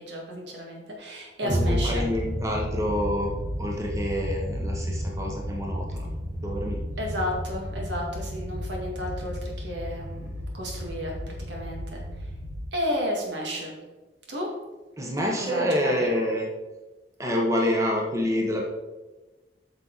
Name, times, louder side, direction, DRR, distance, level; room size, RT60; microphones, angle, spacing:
voice 1, 0.0-2.0 7.0-12.0 12.7-13.8 14.3-14.5 15.4-16.1, equal, 80° right, -1 dB, 2.1 m, -32 dB
voice 2, 1.4-3.3 3.6-6.1 6.4-6.8 15.0-16.5 17.2-18.6, left 1 dB, 15° right, -1 dB, 1.0 m, -27 dB
sound 1, 1.5-12.7, equal, 45° right, 1.2 m, -32 dB
8.8 x 6.0 x 4.0 m, 1.1 s
head